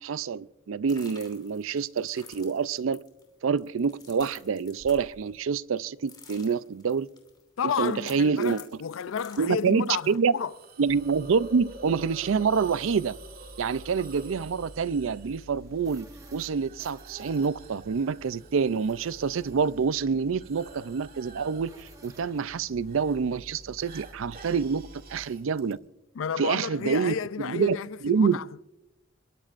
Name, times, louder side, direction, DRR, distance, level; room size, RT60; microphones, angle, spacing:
voice 1, 0.0-3.0 3.4-7.1 7.6-8.6 9.4-10.3 10.8-13.2 13.6-16.1 16.3-25.8 26.4-27.8 28.0-28.4, right 5 dB, 80° right, 0.4 m, -27 dB
sound 1, 0.9-5.8 6.0-10.2, left 5 dB, 20° left, 3.0 m, -51 dB
voice 2, 7.6-10.5 26.1-28.7, left 7 dB, 80° left, 0.4 m, -32 dB
Hiss, 10.3-25.7, right 3 dB, 50° right, 2.3 m, -50 dB
sound 2, 10.9-25.3, equal, 15° right, 1.1 m, -50 dB
24.5 x 22.5 x 2.5 m
head